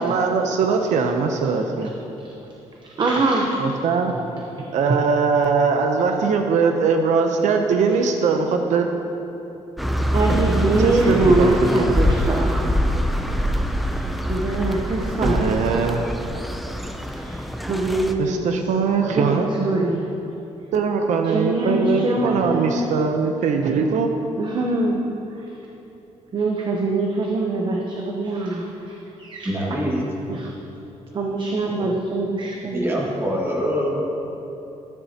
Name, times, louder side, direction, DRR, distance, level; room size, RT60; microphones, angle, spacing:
voice 1, 0.0-1.9 3.6-4.1 4.7-8.9 10.8-11.9 15.2-16.0 18.2-19.5 20.7-24.1, right 5 dB, 85° right, 4 dB, 0.7 m, -21 dB
voice 2, 3.0-3.6 10.1-12.7 14.3-15.8 17.1-17.4 17.7-18.5 19.1-20.1 21.3-22.8 24.4-25.1 26.3-29.5 30.3-30.5 31.1-32.9, right 2 dB, 40° right, 0 dB, 0.8 m, -23 dB
sound 1, 9.8-18.1, equal, ahead, 0.4 m, -24 dB
voice 3, 29.4-30.1 31.1-31.2 32.7-34.0, equal, 20° right, -3 dB, 1.8 m, -24 dB
13.0 x 9.8 x 2.9 m, 3.0 s
cardioid pair, 135°, 12 cm